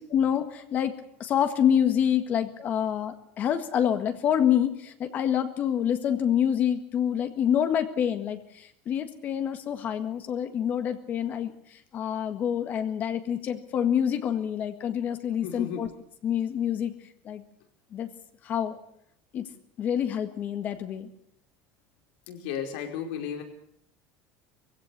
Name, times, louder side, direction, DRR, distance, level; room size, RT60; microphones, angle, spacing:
voice 1, 0.1-0.9 1.2-11.5 11.9-15.9 16.2-16.9 17.2-17.4 17.9-18.1 18.4-18.8 19.3-19.5 19.8-21.1, left 9 dB, 35° left, 9 dB, 1.7 m, -27 dB
voice 2, 15.4-15.8 22.3-23.4, left 8 dB, 80° left, 3 dB, 4.9 m, -34 dB
21.5 x 16.5 x 8.3 m, 0.71 s
cardioid pair, 160°, 5 cm